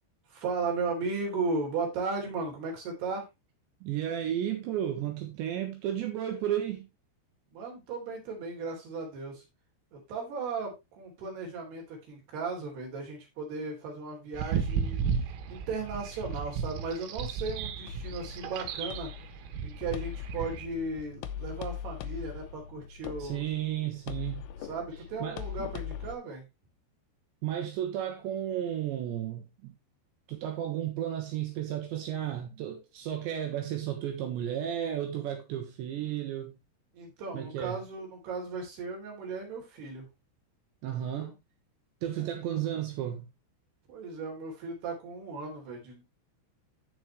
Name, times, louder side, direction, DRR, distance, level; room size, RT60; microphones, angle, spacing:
voice 1, 0.3-3.3 7.5-9.4 9.9-15.1 15.5-19.1 19.6-23.4 24.7-26.4 36.9-40.1 40.9-41.3 42.2-42.3 43.9-46.0, right 3 dB, 55° right, 5.1 m, -36 dB
voice 2, 3.8-6.9 23.2-24.4 25.2-25.7 27.4-29.7 30.3-36.6 37.3-37.8 40.8-41.4 42.0-43.3, right 11 dB, 70° right, 3.3 m, -33 dB
sound 1, 14.3-20.7, right 6 dB, 90° right, 3.8 m, -34 dB
sound 2, 17.9-26.1, left 9 dB, 75° left, 2.5 m, -41 dB
15.5 x 5.4 x 3.2 m
omnidirectional pair, 5.7 m